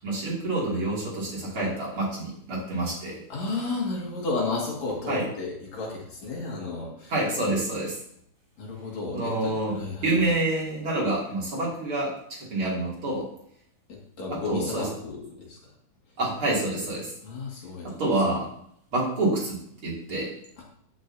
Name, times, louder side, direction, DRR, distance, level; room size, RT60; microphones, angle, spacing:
voice 1, 0.0-3.2 5.1-5.2 7.1-8.0 9.1-13.3 14.3-14.9 16.2-17.1 17.8-18.5 18.9-20.3, right 2 dB, 45° right, -5 dB, 3.3 m, -27 dB
voice 2, 3.3-7.1 8.6-10.2 13.9-15.6 17.2-17.9 20.6-20.7, left 3 dB, 65° left, -2 dB, 3.3 m, -33 dB
14.5 x 6.4 x 2.7 m, 0.70 s
omnidirectional pair, 3.5 m